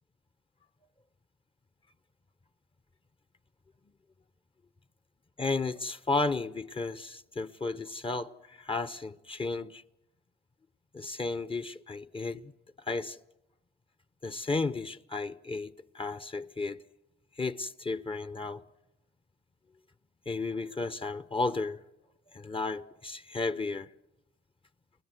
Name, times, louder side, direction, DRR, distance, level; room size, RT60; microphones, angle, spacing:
voice 1, 5.4-9.8 10.9-12.5 12.9-13.2 14.2-16.8 17.4-18.6 20.3-21.8 22.3-23.9, left 3 dB, 25° left, 1.0 m, -33 dB
30.0 x 20.0 x 7.8 m
supercardioid pair, 60°, 21 cm